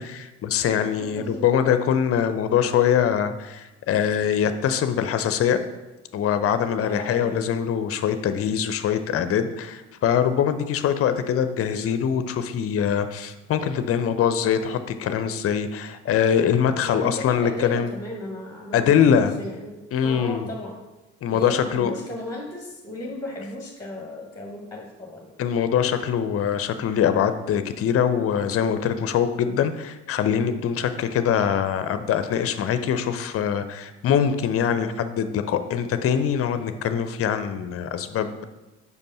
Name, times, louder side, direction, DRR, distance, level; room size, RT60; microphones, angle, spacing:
voice 1, 0.0-5.6 6.1-17.9 18.7-19.3 19.9-20.5 21.2-21.9 25.4-38.4, left 8 dB, 40° left, 10 dB, 0.6 m, -23 dB
voice 2, 1.0-1.6 6.8-7.4 16.8-20.8 21.3-25.4, left 1 dB, 10° left, 0 dB, 1.1 m, -35 dB
5.2 x 4.7 x 5.4 m, 1.1 s
figure-of-eight pair, 50°, 37 cm